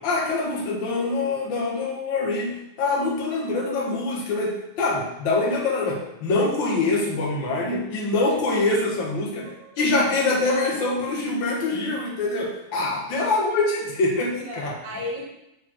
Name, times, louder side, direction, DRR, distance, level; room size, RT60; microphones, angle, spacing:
voice 1, 0.0-14.7, left 3 dB, 50° left, -3 dB, 1.4 m, -24 dB
voice 2, 9.4-9.8 14.3-15.3, left 1 dB, 85° right, -6 dB, 4.3 m, -35 dB
8.3 x 4.7 x 4.7 m, 0.85 s
omnidirectional pair, 4.4 m